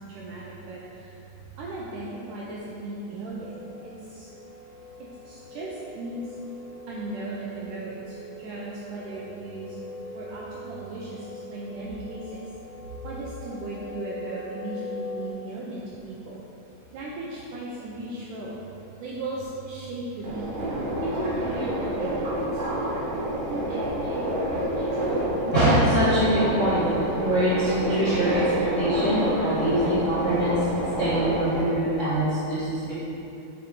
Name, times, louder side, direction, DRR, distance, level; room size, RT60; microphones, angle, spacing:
voice 1, 0.1-1.2 1.6-4.3 5.3-6.4 6.9-9.8 10.1-12.4 13.0-16.4 16.9-18.6 19.0-20.5 21.0-22.7, right 2 dB, 80° right, -5 dB, 1.8 m, -36 dB
sound 1, 3.3-15.3, left 2 dB, 60° left, 2.5 m, -42 dB
Subway metro underground, 20.2-31.6, right 1 dB, 65° right, 1.5 m, -28 dB
voice 2, 25.4-30.5 31.0-32.9, right 1 dB, 80° left, -14 dB, 0.6 m, -24 dB
8.3 x 4.8 x 3.7 m, 2.9 s
omnidirectional pair, 4.4 m